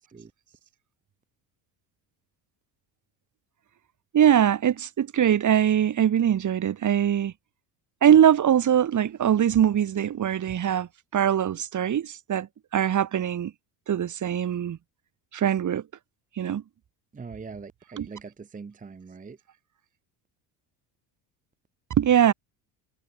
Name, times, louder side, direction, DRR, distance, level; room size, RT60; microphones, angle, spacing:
voice 1, 4.1-7.3 8.0-12.5 12.7-13.5 13.9-14.8 15.3-15.8 16.4-16.6 18.0-18.1 22.0-22.3, right 9 dB, 40° right, 1.7 m, -22 dB
voice 2, 17.1-19.4, right 5 dB, 15° right, 1.0 m, -42 dB
supercardioid pair, 100°, 46 cm